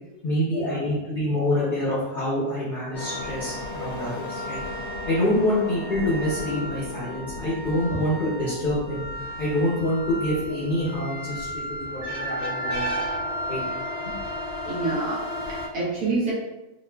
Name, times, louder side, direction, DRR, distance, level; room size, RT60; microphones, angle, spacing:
voice 1, 0.2-4.6 5.0-13.0 13.5-13.6 14.0-14.1, left 1 dB, 45° left, -8 dB, 0.6 m, -26 dB
sound 1, 2.9-15.7, left 1 dB, 85° left, 1.2 m, -34 dB
voice 2, 12.0-13.3 14.7-16.3, right 3 dB, 70° right, -6 dB, 1.0 m, -29 dB
2.9 x 2.4 x 2.2 m, 1.0 s
omnidirectional pair, 1.7 m